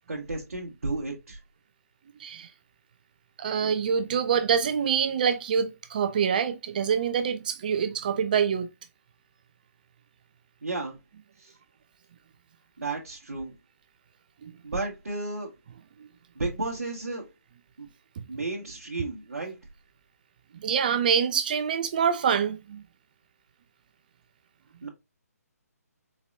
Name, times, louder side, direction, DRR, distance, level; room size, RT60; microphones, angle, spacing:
voice 1, 0.1-1.4 10.6-11.0 11.4-11.5 12.8-13.5 14.6-15.5 16.3-17.3 17.8-17.9 18.3-19.6 24.8-24.9, right 3 dB, 60° right, 1.2 m, -33 dB
voice 2, 3.4-8.7 14.4-14.5 18.2-18.3 20.5-22.8, right 7 dB, 30° right, 0.5 m, -25 dB
4.3 x 3.9 x 2.6 m
figure-of-eight pair, 140°, 9 cm